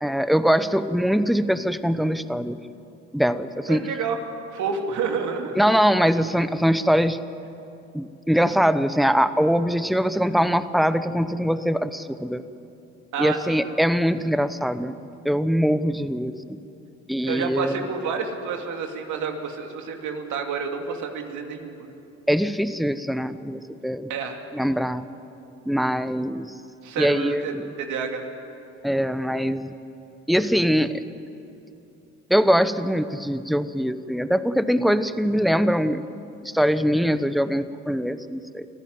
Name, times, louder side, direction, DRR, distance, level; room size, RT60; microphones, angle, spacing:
voice 1, 0.0-2.6 3.1-3.9 5.6-7.2 7.9-12.4 13.2-14.9 15.2-16.6 17.1-17.8 22.3-24.1 24.5-25.0 25.7-26.5 27.0-27.6 28.8-29.7 30.3-31.0 32.3-36.0 36.4-38.7, equal, ahead, 12 dB, 0.9 m, -22 dB
voice 2, 3.7-4.2 4.5-5.5 13.1-13.6 17.2-21.9 24.1-24.4 26.8-28.2, right 5 dB, 80° right, 3 dB, 2.7 m, -29 dB
25.0 x 15.0 x 9.4 m, 2.9 s
cardioid pair, 80°, 30 cm